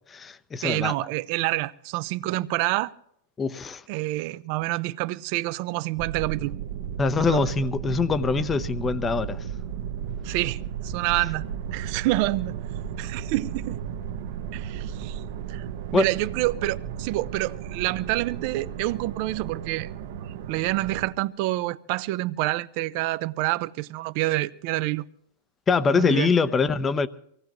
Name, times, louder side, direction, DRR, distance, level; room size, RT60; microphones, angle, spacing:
voice 1, 0.1-0.9 3.4-3.8 7.0-9.4 15.9-16.1 25.7-27.1, left 4 dB, 20° left, 0.8 m, -23 dB
voice 2, 0.6-2.9 3.9-6.5 7.3-7.4 10.2-11.4 11.7-12.5 13.0-13.8 14.5-15.2 15.5-15.6 15.9-19.9 20.2-25.0 25.9-26.3, right 18 dB, 50° right, 0.7 m, -27 dB
sound 1, 5.9-21.1, right 8 dB, 70° right, 1.2 m, -34 dB
23.5 x 17.5 x 3.1 m
hypercardioid pair, 125°, 0 cm